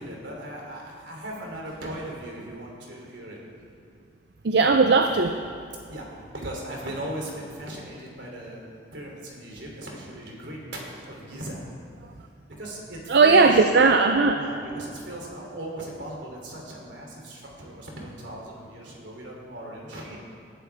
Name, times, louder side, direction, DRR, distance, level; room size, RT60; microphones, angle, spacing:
voice 1, 0.0-3.4 5.9-8.6 8.9-11.6 12.6-13.6 14.3-20.2, right 1 dB, 85° right, -2 dB, 3.0 m, -38 dB
voice 2, 4.4-5.4 13.1-14.4, right 4 dB, 65° right, 6 dB, 0.5 m, -18 dB
19.5 x 11.0 x 3.5 m, 2.4 s
head